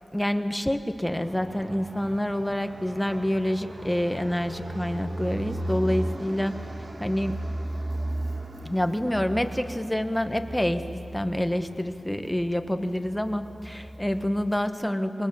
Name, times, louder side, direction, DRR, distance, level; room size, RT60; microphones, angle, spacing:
voice 1, 0.1-6.5 7.0-7.5 8.6-10.8 11.1-15.3, left 1 dB, 5° left, 8 dB, 1.2 m, -27 dB
Fixed-wing aircraft airplane, 1.2-14.7, right 1 dB, 45° right, 1.5 m, -36 dB
23.5 x 19.5 x 7.0 m, 2.8 s
wide cardioid pair, 65°, 0 cm